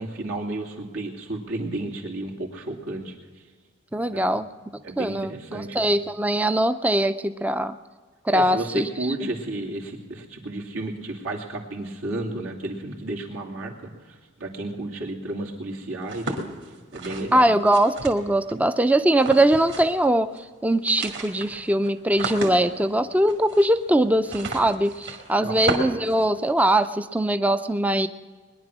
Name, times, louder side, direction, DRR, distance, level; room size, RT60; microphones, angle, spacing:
voice 1, 0.0-3.1 4.1-4.3 4.8-5.9 8.3-16.3 16.9-17.5 25.4-25.6, right 2 dB, 85° right, -1 dB, 2.7 m, -32 dB
voice 2, 3.9-4.5 5.0-7.8 8.3-8.9 17.3-20.3 20.6-28.1, right 1 dB, 5° right, 11 dB, 0.4 m, -21 dB
sound 1, 16.0-18.5 19.1-20.1 20.3-20.4 20.7-26.9, right 2 dB, 55° right, 2.2 m, -34 dB
21.5 x 10.5 x 6.1 m, 1.5 s
head